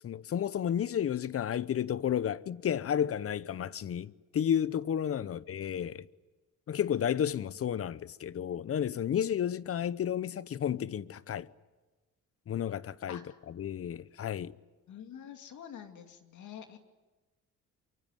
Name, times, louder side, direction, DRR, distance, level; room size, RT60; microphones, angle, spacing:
voice 1, 0.0-6.1 6.7-11.5 12.5-14.5, left 9 dB, 50° left, 0.8 m, -32 dB
voice 2, 14.9-16.8, left 8 dB, 70° left, 2.7 m, -47 dB
24.0 x 23.5 x 9.3 m
cardioid pair, 90°, 30 cm